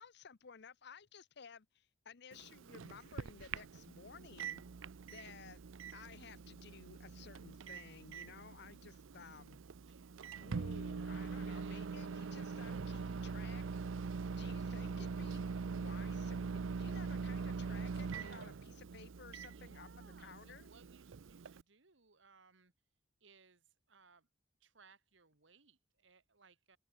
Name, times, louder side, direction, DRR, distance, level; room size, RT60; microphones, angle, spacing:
voice 1, 0.0-4.6 5.1-5.6 5.9-9.6 10.4-13.6 14.4-15.4 15.7-20.7, left 6 dB, 60° left, 0.7 m, -56 dB
Microwave oven, 2.3-21.6, right 4 dB, 85° right, 0.5 m, -43 dB
voice 2, 9.8-10.5 11.4-11.9 14.1-14.6 19.4-22.7 23.2-24.3 24.6-26.8, right 5 dB, 70° right, 1.9 m, -65 dB
open air
head